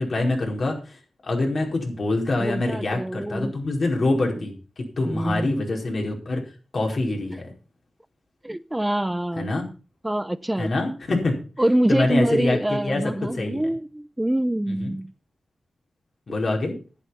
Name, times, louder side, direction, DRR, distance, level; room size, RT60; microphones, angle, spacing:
voice 1, 0.0-6.4 6.7-7.5 9.4-9.6 10.6-11.4 11.9-13.0 13.3-13.6 14.7-14.9 16.3-16.7, left 2 dB, 60° left, 4.8 m, -25 dB
voice 2, 2.4-3.5 5.1-5.6 8.4-9.5 10.0-10.7 11.6-15.1, right 1 dB, 15° right, 0.5 m, -25 dB
11.0 x 9.7 x 5.8 m
cardioid pair, 65°, 0 cm